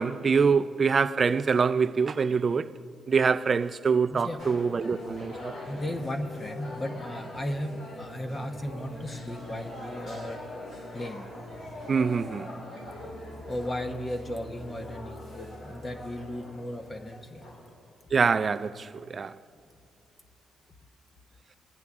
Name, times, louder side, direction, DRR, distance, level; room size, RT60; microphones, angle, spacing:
voice 1, 0.0-2.8 3.1-5.6 11.9-12.5 18.1-19.3, right 5 dB, 40° right, 0.4 m, -25 dB
sound 1, 4.4-17.7, left 1 dB, 75° left, 3.1 m, -42 dB
voice 2, 5.7-10.4 10.9-11.3 13.5-17.5, left 1 dB, 25° left, 0.9 m, -35 dB
21.5 x 10.5 x 3.6 m
cardioid pair, 90°, 0 cm